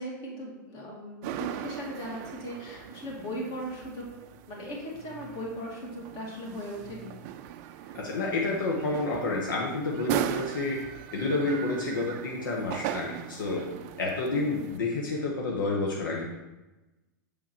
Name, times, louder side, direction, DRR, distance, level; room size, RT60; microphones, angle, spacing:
voice 1, 0.0-4.1 4.5-7.2 7.8-7.9 13.6-13.8, equal, 40° left, -2 dB, 2.1 m, -38 dB
sound 1, 1.2-14.8, right 11 dB, 45° right, 0.4 m, -39 dB
voice 2, 7.9-10.8 11.1-13.7 14.0-16.4, left 2 dB, 80° left, -1 dB, 1.0 m, -29 dB
6.9 x 3.7 x 4.3 m, 1.1 s
hypercardioid pair, 120°, 11 cm